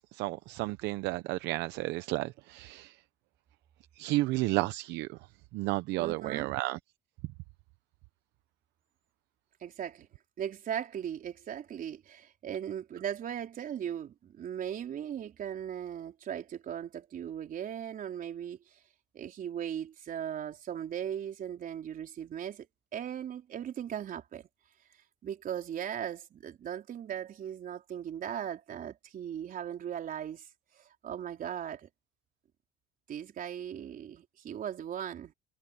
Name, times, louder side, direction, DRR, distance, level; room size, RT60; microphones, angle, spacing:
voice 1, 0.1-3.0 4.0-5.1 5.5-6.8, right 19 dB, 80° right, 0.8 m, -32 dB
voice 2, 6.0-6.5 9.6-10.1 10.4-18.8 19.1-22.7 22.9-24.5 25.2-30.5 30.7-31.9 33.1-35.3, right 9 dB, 50° right, 4.2 m, -38 dB
supercardioid pair, 85°, 18 cm